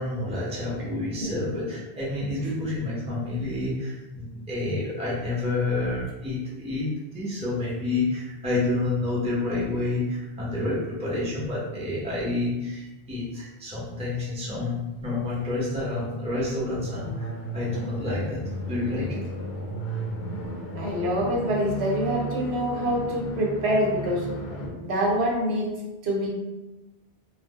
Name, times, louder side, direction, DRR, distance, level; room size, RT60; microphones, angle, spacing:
voice 1, 0.0-19.2, left 2 dB, 10° right, -6 dB, 0.5 m, -29 dB
sound 1, 16.3-24.7, right 1 dB, 65° left, 0.7 m, -34 dB
voice 2, 20.8-24.3 24.6-25.7 26.0-26.3, equal, 80° right, -2 dB, 0.9 m, -26 dB
2.0 x 2.0 x 3.5 m, 1.0 s
omnidirectional pair, 1.1 m